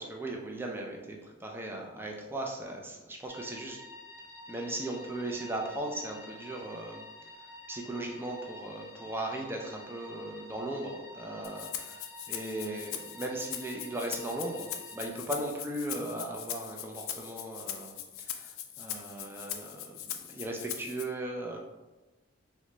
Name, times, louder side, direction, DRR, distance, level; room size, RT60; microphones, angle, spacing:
voice 1, 0.0-3.8 4.5-7.0 7.4-21.6, right 1 dB, 10° right, 0 dB, 0.3 m, -38 dB
sound 1, 3.3-15.1, left 1 dB, 20° left, 0.9 m, -49 dB
Rattle (instrument), 11.4-21.0, left 10 dB, 85° left, 0.3 m, -41 dB
3.7 x 2.2 x 3.0 m, 1.1 s
head